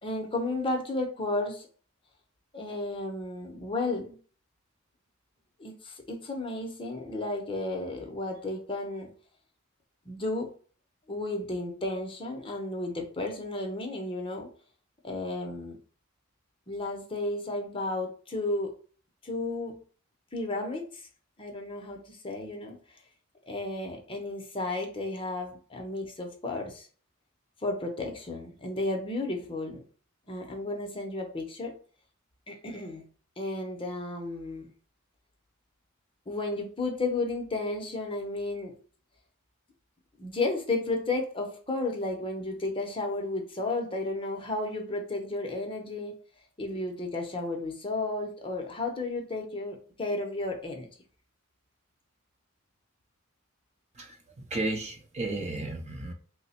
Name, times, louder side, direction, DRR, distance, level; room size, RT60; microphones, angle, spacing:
voice 1, 0.0-1.7 2.5-4.2 5.6-9.1 10.1-10.5 11.1-14.5 15.0-15.8 16.7-18.7 19.2-19.8 20.3-21.0 21.4-22.8 23.5-26.9 27.6-29.8 30.3-31.8 32.5-33.0 33.4-34.7 36.3-38.7 40.2-46.1 46.6-50.9, left 2 dB, 25° left, 2 dB, 0.6 m, -33 dB
voice 2, 54.5-56.1, right 2 dB, 30° right, 3 dB, 0.6 m, -33 dB
3.1 x 2.1 x 4.1 m, 0.41 s
head